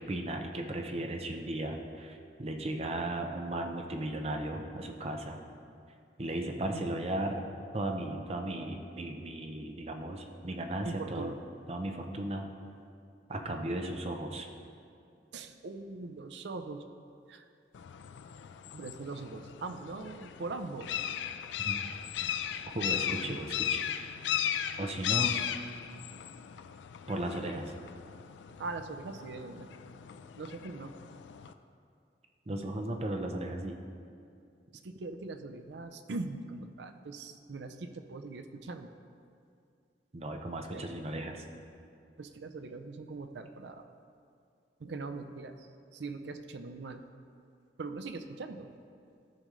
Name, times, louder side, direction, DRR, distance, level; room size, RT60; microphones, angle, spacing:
voice 1, 0.0-5.4 6.2-7.4 7.7-11.3 11.7-12.5 13.3-14.5 21.6-21.8 22.2-22.3 22.7-24.2 24.8-25.4 27.1-27.7 32.5-33.8 40.1-41.4, right 1 dB, 35° right, 4 dB, 0.6 m, -36 dB
voice 2, 10.8-11.3 15.3-16.8 17.3-17.4 18.7-21.0 23.2-23.4 28.6-29.7 30.4-30.9 34.8-38.9 40.7-40.8 42.2-43.9 44.8-47.0 47.8-48.7, right 3 dB, 75° right, 7 dB, 0.5 m, -41 dB
sound 1, 17.7-31.5, left 10 dB, 90° left, 0.3 m, -37 dB
13.5 x 5.2 x 3.1 m, 2.4 s
head